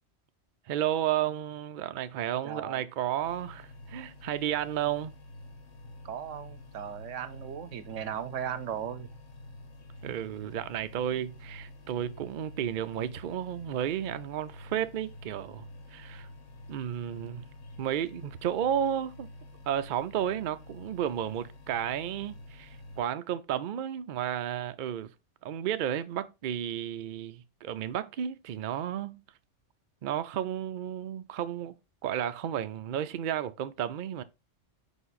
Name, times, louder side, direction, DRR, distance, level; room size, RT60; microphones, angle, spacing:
voice 1, 0.7-5.2 10.0-15.6 15.9-16.3 16.7-17.4 17.8-19.3 19.7-25.1 25.4-29.2 30.0-31.7 32.0-34.2, right 10 dB, 60° right, 0.5 m, -32 dB
voice 2, 2.4-2.8 6.0-9.1 10.1-10.2, right 9 dB, 80° right, 1.1 m, -37 dB
sound 1, 3.2-23.0, left 2 dB, 80° left, 1.5 m, -48 dB
5.0 x 5.0 x 4.1 m
omnidirectional pair, 1.3 m